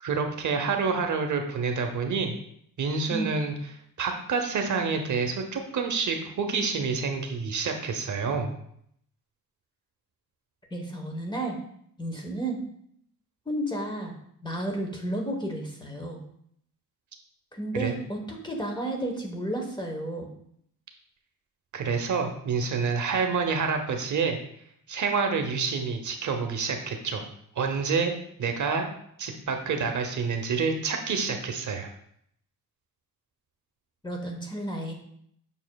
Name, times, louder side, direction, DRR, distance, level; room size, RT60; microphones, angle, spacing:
voice 1, 0.0-2.4 2.8-3.5 4.0-8.5 17.8-17.9 21.7-24.4 24.9-27.2 27.6-28.1 28.4-28.9 29.2-31.9, right 5 dB, 55° right, 4 dB, 0.8 m, -28 dB
voice 2, 10.7-11.6 12.0-12.6 13.5-14.1 14.4-16.2 17.5-20.3 34.0-34.9, right 1 dB, 15° left, 1 dB, 1.0 m, -32 dB
7.1 x 6.1 x 2.3 m, 0.69 s
wide cardioid pair, 160°, 35 cm